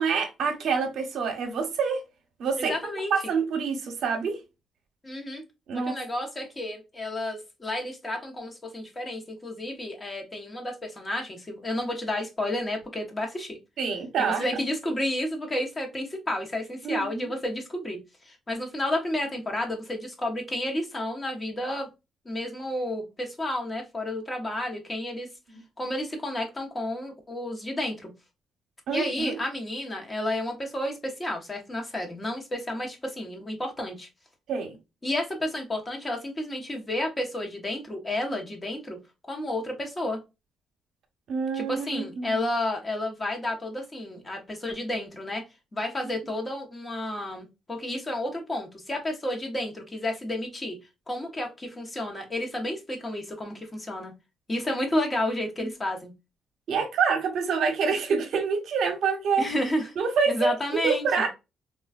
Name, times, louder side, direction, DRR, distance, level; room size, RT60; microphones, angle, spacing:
voice 1, 0.0-2.0 2.4-2.8 3.1-4.4 5.7-5.9 13.8-14.4 16.8-17.3 28.9-29.4 34.5-34.8 41.3-42.4 56.7-59.5 60.0-61.3, right 5 dB, 70° right, 0.7 m, -26 dB
voice 2, 2.6-3.3 5.0-5.4 5.7-13.6 14.2-21.9 22.2-25.3 25.8-28.1 28.9-34.1 35.0-39.0 39.3-40.2 41.5-45.4 45.7-50.8 51.1-54.1 54.5-56.1 59.4-59.9 60.3-61.3, left 1 dB, 25° left, 0.9 m, -31 dB
3.2 x 2.3 x 2.3 m
cardioid pair, 90°, 0 cm